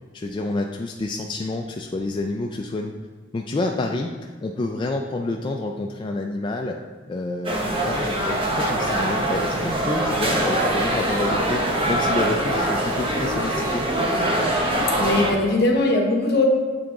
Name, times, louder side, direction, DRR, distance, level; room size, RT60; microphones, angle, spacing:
voice 1, 0.1-2.9 3.3-6.8 7.1-13.8, left 2 dB, 25° left, 1 dB, 0.3 m, -28 dB
sound 1, 7.4-15.3, right 1 dB, 30° right, 0.9 m, -23 dB
voice 2, 15.0-16.5, left 2 dB, 60° left, 1 dB, 1.0 m, -20 dB
7.6 x 3.5 x 3.7 m, 1.5 s
head